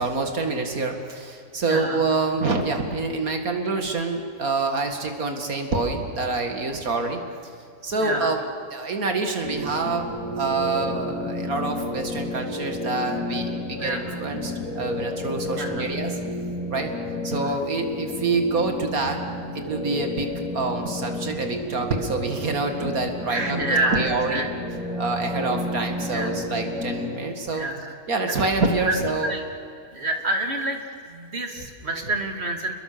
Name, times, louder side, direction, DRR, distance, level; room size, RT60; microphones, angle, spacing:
voice 1, 0.0-7.2 7.8-8.4 8.7-10.1 10.4-16.2 16.7-16.9 17.2-19.3 19.5-20.3 20.5-24.4 25.0-27.7 28.1-29.3, right 3 dB, 80° right, 5 dB, 2.6 m, -26 dB
voice 2, 1.7-2.0 8.0-8.3 13.8-14.2 15.5-15.8 17.4-17.5 23.3-24.5 26.1-26.4 27.5-27.9 28.3-28.4 28.9-29.0 29.2-29.4 29.9-30.8 31.1-32.7, right 2 dB, 45° right, 4 dB, 2.6 m, -27 dB
sound 1, 9.4-27.1, left 1 dB, 80° left, 4.0 m, -31 dB
28.0 x 22.0 x 6.9 m, 2.4 s
omnidirectional pair, 1.5 m